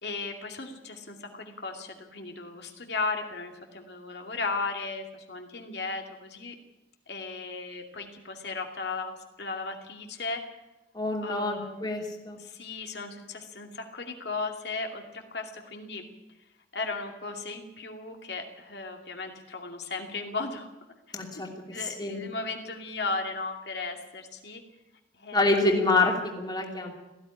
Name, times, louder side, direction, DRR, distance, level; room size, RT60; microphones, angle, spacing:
voice 1, 0.0-6.5 7.1-10.4 11.2-11.9 12.4-16.0 16.7-20.7 21.3-24.6 25.2-25.5, left 3 dB, 65° left, 3 dB, 2.5 m, -36 dB
voice 2, 10.9-12.4 21.1-21.5 21.8-22.2 25.3-26.9, left 2 dB, 20° left, 1 dB, 2.8 m, -26 dB
18.0 x 14.5 x 9.9 m, 1.0 s
head